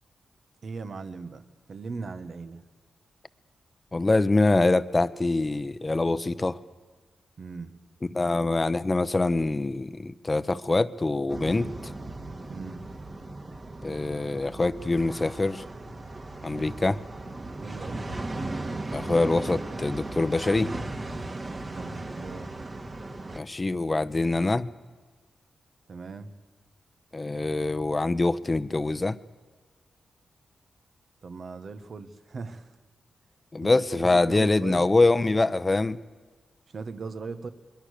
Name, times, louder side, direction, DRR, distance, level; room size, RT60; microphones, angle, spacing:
voice 1, 0.6-2.6 7.4-7.8 12.5-13.0 16.5-16.8 17.6-18.2 21.7-22.6 25.9-26.3 31.2-32.7 33.6-34.9 36.7-37.5, right 4 dB, 60° right, 9 dB, 1.6 m, -39 dB
voice 2, 3.9-6.6 8.0-11.9 13.8-15.6 16.4-17.0 18.9-20.7 23.3-24.7 27.1-29.2 33.5-36.0, left 2 dB, 25° left, 14 dB, 0.9 m, -24 dB
sound 1, 11.3-23.4, right 2 dB, 35° right, 2.1 m, -37 dB
24.5 x 22.0 x 6.7 m, 1.4 s
cardioid pair, 80°, 0 cm